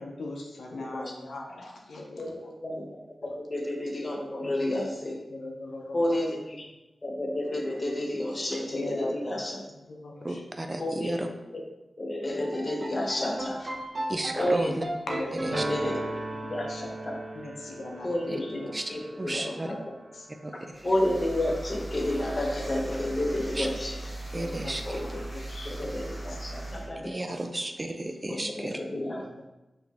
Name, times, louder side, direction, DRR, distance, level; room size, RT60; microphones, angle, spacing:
voice 1, 0.0-2.5 4.4-4.8 5.3-6.1 8.7-9.4 9.9-10.4 15.1-16.0 16.3-16.9 17.3-18.7 19.3-19.6 20.1-20.3 24.3-25.9 26.3-27.1 28.9-29.5, left 2 dB, 85° left, -1 dB, 0.7 m, -40 dB
voice 2, 2.2-5.2 5.9-6.7 7.0-9.6 10.8-11.2 11.5-11.6 12.0-13.7 14.3-14.7 15.6-16.0 16.5-17.2 18.0-18.6 18.9-19.8 20.8-24.0 24.8-25.2 25.7-27.2 28.3-29.2, left 1 dB, 40° left, 1 dB, 1.0 m, -31 dB
voice 3, 10.2-11.3 14.1-14.8 15.4-15.6 18.7-18.8 19.2-19.7 20.4-20.5 23.6-23.7 24.3-24.8 27.0-28.8, right 1 dB, 35° right, 5 dB, 0.5 m, -32 dB
sound 1, 12.3-20.6, right 1 dB, 65° right, 1.0 m, -36 dB
sound 2, 20.7-26.9, right 2 dB, 20° left, 1.2 m, -38 dB
4.8 x 3.1 x 3.4 m, 1.0 s
cardioid pair, 40°, 0 cm